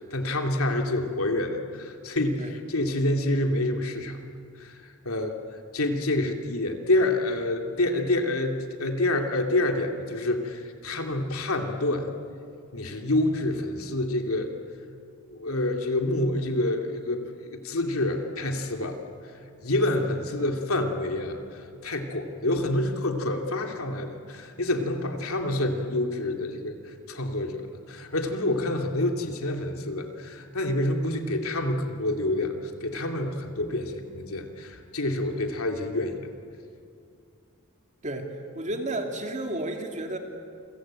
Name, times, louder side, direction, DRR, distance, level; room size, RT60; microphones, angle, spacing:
voice 1, 0.0-4.2 4.6-4.8 5.0-5.4 5.7-12.1 12.7-14.5 15.3-19.0 19.6-26.7 27.1-36.3, left 1 dB, 85° left, 4 dB, 2.7 m, -27 dB
voice 2, 38.0-40.2, right 1 dB, 35° right, 3 dB, 2.8 m, -32 dB
28.5 x 23.0 x 9.0 m, 2.4 s
head